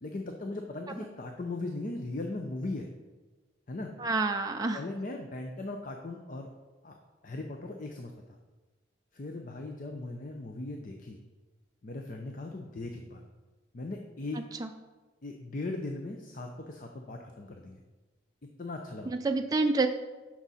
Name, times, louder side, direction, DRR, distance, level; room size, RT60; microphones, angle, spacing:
voice 1, 0.0-2.9 3.7-3.9 4.7-6.5 6.8-6.9 7.2-8.4 9.1-11.2 11.8-13.2 13.7-14.4 15.2-17.8 18.6-19.1, left 2 dB, 45° left, 3 dB, 0.6 m, -38 dB
voice 2, 4.0-4.8 14.6-14.7 19.1-19.9, right 3 dB, 20° right, 4 dB, 0.4 m, -28 dB
9.8 x 6.1 x 4.2 m, 1.2 s
head